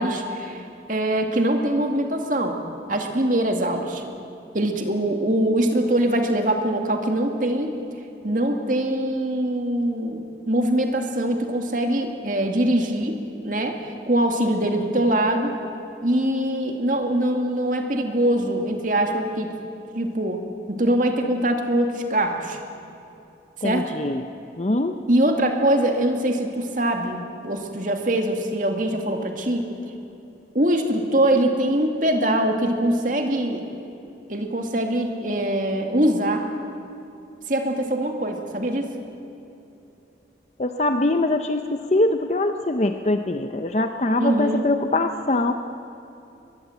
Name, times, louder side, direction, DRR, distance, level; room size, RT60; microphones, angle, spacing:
voice 1, 0.0-2.6 2.9-4.0 4.5-7.7 8.2-13.2 13.4-15.5 16.0-19.5 19.9-22.6 23.6-23.9 25.1-29.7 30.5-33.7 34.3-36.4 37.5-38.9 44.2-44.6, right 1 dB, 45° right, 4 dB, 2.3 m, -23 dB
voice 2, 23.6-24.2 24.6-25.0 40.6-45.5, left 2 dB, 35° left, 7 dB, 0.7 m, -23 dB
22.5 x 21.5 x 7.9 m, 2.8 s
head